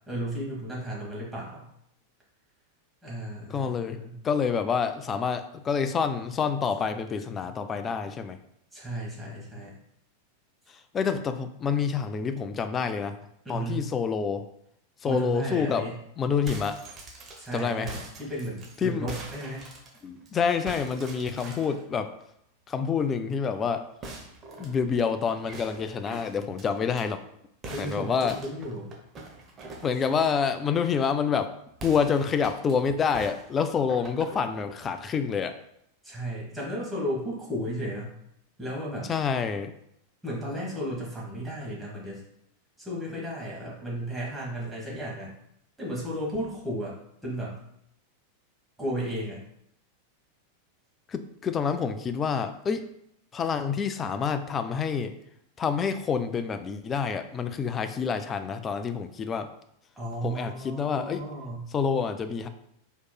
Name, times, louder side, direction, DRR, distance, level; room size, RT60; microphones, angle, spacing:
voice 1, 0.1-1.7 3.0-4.2 8.7-9.7 13.4-13.9 15.0-16.0 17.4-19.7 27.7-28.9 36.0-38.1 38.6-39.1 40.2-42.2 42.8-45.3 45.8-46.9 47.2-47.6 48.8-49.4 60.0-61.7, equal, 5° right, -6 dB, 1.3 m, -34 dB
voice 2, 3.5-8.4 10.9-13.1 13.5-14.4 15.0-15.9 16.2-16.8 17.5-17.9 18.8-19.1 20.0-22.1 22.7-23.8 24.6-27.2 27.8-28.4 29.8-31.5 31.8-35.6 39.1-39.7 51.1-52.8 53.3-55.1 55.6-59.5 60.2-61.2 61.7-62.5, left 6 dB, 25° left, 9 dB, 0.3 m, -27 dB
sound 1, 16.4-20.3 20.7-21.8 24.0-27.0 27.6-30.5 31.7-32.7 33.1-34.9, right 2 dB, 25° right, 0.7 m, -44 dB
4.3 x 3.0 x 2.2 m, 0.75 s
figure-of-eight pair, 90°, 0 cm